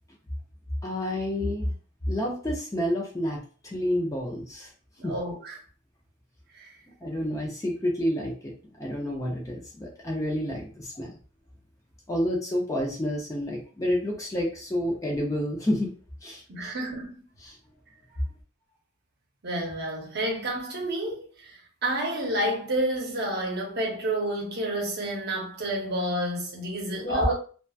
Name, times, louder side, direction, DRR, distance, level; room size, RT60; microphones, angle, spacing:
voice 1, 0.8-1.7 2.1-4.7 5.0-5.1 7.0-8.5 8.8-11.1 12.1-15.9 16.2-16.7 17.4-17.6 27.0-27.3, left 1 dB, 15° left, 0.5 m, -29 dB
voice 2, 5.0-5.6 6.5-6.7 16.5-17.2 19.4-27.3, right 1 dB, 50° right, 0.8 m, -30 dB
2.8 x 2.2 x 2.3 m
head